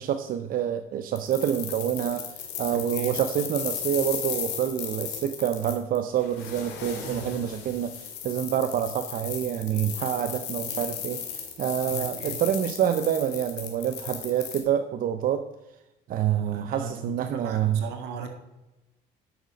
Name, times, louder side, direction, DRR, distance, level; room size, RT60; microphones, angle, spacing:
voice 1, 0.0-15.4 16.1-17.8, right 10 dB, 55° right, 8 dB, 0.6 m, -27 dB
sound 1, 1.2-14.6, left 8 dB, 80° left, 2.0 m, -36 dB
voice 2, 2.7-3.1 7.0-7.5 11.8-12.4 16.5-18.3, right 5 dB, 80° right, 5 dB, 1.8 m, -37 dB
9.2 x 6.5 x 5.1 m, 0.99 s
cardioid pair, 110°, 17 cm